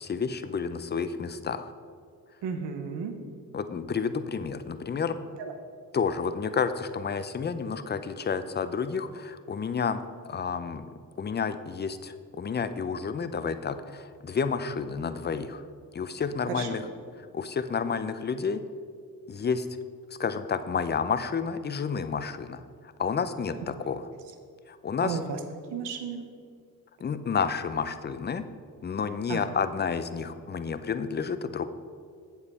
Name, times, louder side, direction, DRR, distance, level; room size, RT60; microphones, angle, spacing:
voice 1, 0.0-1.7 3.5-5.2 5.9-10.9 11.2-15.6 15.9-16.8 17.3-18.6 19.3-19.7 20.2-22.6 23.0-24.1 24.7-25.2 27.0-28.5 28.8-31.7, left 5 dB, 25° left, 11 dB, 0.5 m, -30 dB
voice 2, 2.4-3.2 5.4-5.5 16.5-16.7 25.0-25.4 25.7-26.3 29.3-29.4, right 6 dB, 75° right, 6 dB, 1.0 m, -33 dB
7.8 x 7.2 x 4.2 m, 2.3 s
supercardioid pair, 55°, 42 cm